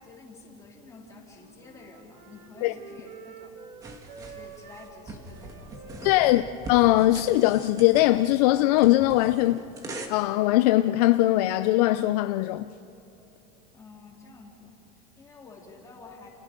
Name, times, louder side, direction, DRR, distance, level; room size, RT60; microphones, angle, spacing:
voice 1, 0.0-3.6 4.1-6.5 13.7-16.3, left 3 dB, 15° left, 3.6 m, -49 dB
Wind instrument woodwind instrument, 1.1-4.9 5.2-9.5, right 4 dB, 90° right, 3.4 m, -48 dB
sound 1, 3.8-10.1, right 2 dB, 15° right, 1.9 m, -42 dB
voice 2, 6.0-6.4 6.7-9.6 10.1-12.7, left 16 dB, 70° left, 0.6 m, -21 dB
30.0 x 29.0 x 5.3 m
cardioid pair, 175°, 21 cm